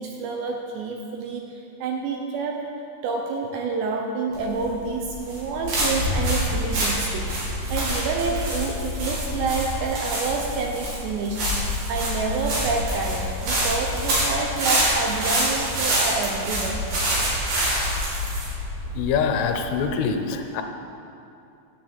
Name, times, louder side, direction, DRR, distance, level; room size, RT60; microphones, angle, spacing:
voice 1, 0.0-2.6 3.0-11.5 11.9-16.8, right 4 dB, 75° right, 1 dB, 2.7 m, -28 dB
sound 1, 4.3-19.8, equal, 50° right, 4.2 m, -26 dB
voice 2, 19.0-20.6, left 6 dB, 85° left, 5 dB, 3.4 m, -24 dB
11.0 x 9.1 x 8.0 m, 2.7 s
omnidirectional pair, 5.7 m